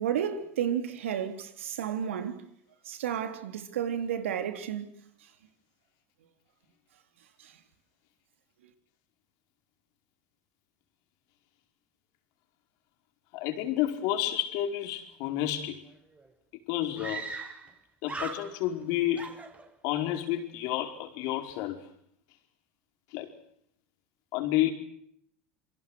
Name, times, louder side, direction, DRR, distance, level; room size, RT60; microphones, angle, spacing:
voice 1, 0.0-2.4 2.8-5.3 7.4-7.6, right 9 dB, 80° right, 3.7 m, -32 dB
voice 2, 13.3-15.8 16.7-17.3 18.0-19.3 19.8-21.9 23.1-23.3 24.3-24.7, left 13 dB, 65° left, 5.1 m, -30 dB
Screaming, 15.9-16.0 16.2-16.3 17.0-17.8 18.0-18.8 19.1-20.1, right 4 dB, 20° right, 5.7 m, -39 dB
27.5 x 24.5 x 6.3 m
hypercardioid pair, 80°, 7 cm